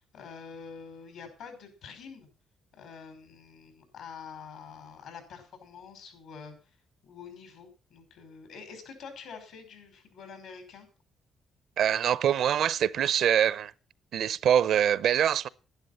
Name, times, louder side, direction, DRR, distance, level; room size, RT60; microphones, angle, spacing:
voice 1, 0.0-2.3 2.7-6.5 7.0-10.9, left 6 dB, 80° left, 5.3 m, -46 dB
voice 2, 11.8-13.7 14.1-15.5, right 9 dB, 70° right, 0.6 m, -24 dB
11.5 x 11.5 x 5.6 m
cardioid pair, 90°, 0 cm